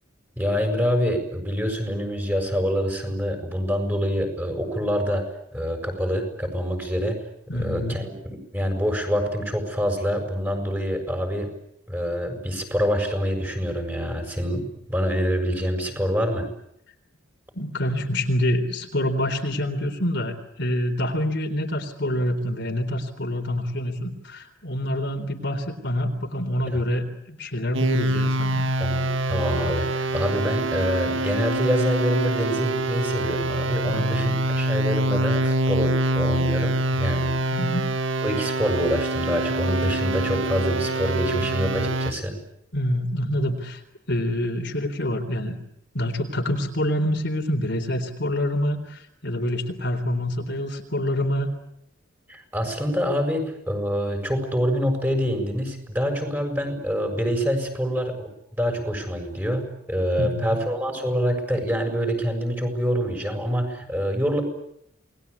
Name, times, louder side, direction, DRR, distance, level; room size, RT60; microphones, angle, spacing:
voice 1, 0.4-5.2 5.5-7.2 7.5-11.5 11.9-16.5 26.7-26.8 28.8-37.6 38.2-42.4 52.3-58.3 58.6-64.4, equal, 10° right, 4 dB, 6.9 m, -26 dB
voice 2, 7.5-7.9 17.6-28.6 33.9-34.4 37.5-37.9 42.7-43.8 44.1-45.6 45.9-51.5 60.2-60.6, left 1 dB, 60° left, 4 dB, 3.9 m, -26 dB
sound 1, 27.7-42.1, right 1 dB, 70° right, 1.8 m, -25 dB
29.0 x 21.5 x 8.5 m, 0.77 s
head